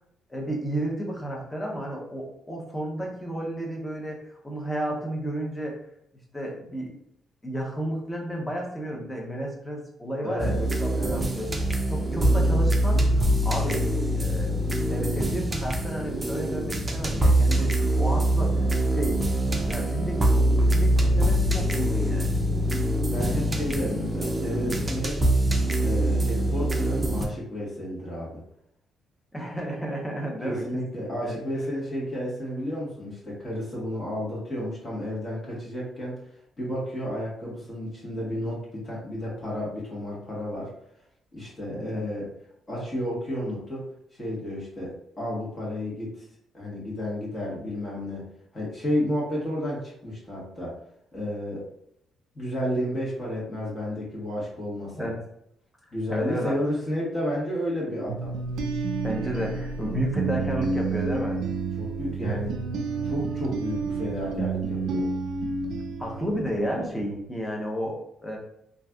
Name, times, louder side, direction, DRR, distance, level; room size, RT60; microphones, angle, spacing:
voice 1, 0.3-5.7 6.3-6.9 7.4-11.5 11.9-13.9 14.1-14.5 14.9-18.6 18.9-19.2 19.6-20.4 20.6-22.4 29.3-30.6 31.2-31.4 41.7-42.0 55.0-55.2 55.8-56.6 59.0-61.4 62.3-62.4 66.0-68.4, right 1 dB, 10° left, -1 dB, 0.9 m, -32 dB
voice 2, 10.2-10.5 11.0-11.3 23.0-25.2 25.8-28.4 30.4-36.2 36.6-40.7 41.3-42.3 42.7-43.8 44.1-46.2 46.5-48.2 48.5-50.8 51.1-51.7 52.3-55.1 55.9-58.3 61.8-62.6 63.0-65.1, equal, 30° left, -6 dB, 1.3 m, -31 dB
sound 1, 10.4-27.2, right 1 dB, 15° right, 0.5 m, -24 dB
sound 2, 58.1-66.8, right 4 dB, 75° right, 0.3 m, -30 dB
3.1 x 2.5 x 2.3 m, 0.74 s
cardioid pair, 90°, 0 cm